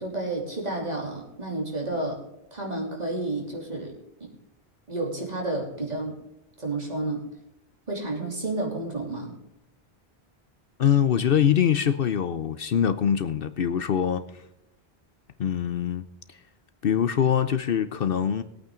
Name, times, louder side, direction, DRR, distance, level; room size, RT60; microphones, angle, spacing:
voice 1, 0.0-2.2 2.5-3.9 4.2-4.3 4.9-6.2 6.6-7.2 7.9-9.3, right 2 dB, 40° right, 3.3 m, -31 dB
voice 2, 10.8-14.2 15.4-16.0 16.8-18.4, left 8 dB, 60° left, 0.8 m, -23 dB
19.5 x 8.8 x 3.8 m
omnidirectional pair, 1.1 m